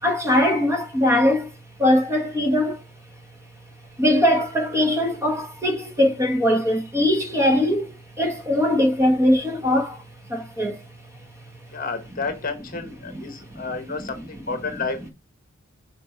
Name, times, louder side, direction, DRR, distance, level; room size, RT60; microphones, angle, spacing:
voice 1, 0.0-1.5 1.8-2.8 4.0-10.0 10.3-10.8 13.1-13.2 13.5-13.7, left 1 dB, 15° right, 1.4 m, -21 dB
voice 2, 11.7-15.1, left 4 dB, 40° left, 1.1 m, -31 dB
6.5 x 4.5 x 4.4 m
head